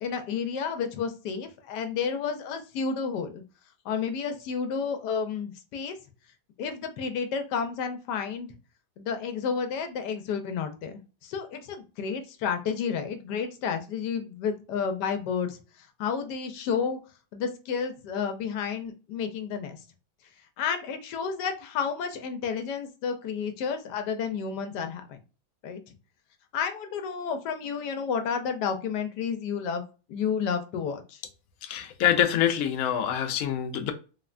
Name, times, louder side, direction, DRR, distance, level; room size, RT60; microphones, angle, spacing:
voice 1, 0.0-3.4 3.8-6.0 6.6-8.5 9.0-10.9 11.2-15.6 16.0-17.0 17.3-19.8 20.6-25.2 25.6-25.9 26.5-29.8 30.1-31.2, left 6 dB, 90° left, 1.2 m, -31 dB
voice 2, 31.6-33.9, left 10 dB, 70° left, 1.0 m, -25 dB
3.4 x 2.1 x 2.4 m
omnidirectional pair, 1.7 m